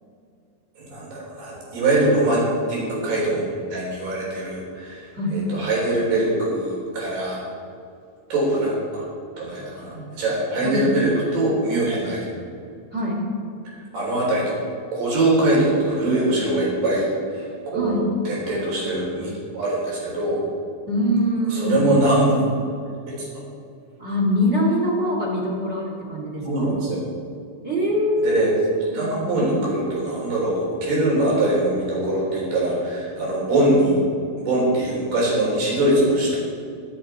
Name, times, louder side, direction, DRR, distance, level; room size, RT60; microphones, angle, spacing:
voice 1, 0.8-7.4 8.3-9.0 9.4-12.3 13.9-14.6 14.9-18.0 18.3-20.4 21.5-22.5 23.1-23.3 26.4-27.0 28.2-28.5 28.9-34.0 34.4-36.4, right 1 dB, 80° right, -4 dB, 5.9 m, -22 dB
voice 2, 12.9-13.2 17.7-18.0 20.9-21.8 24.0-26.7 27.6-28.6 28.8-29.4, equal, 20° right, -3 dB, 2.6 m, -23 dB
23.0 x 8.1 x 4.5 m, 2.5 s
omnidirectional pair, 4.5 m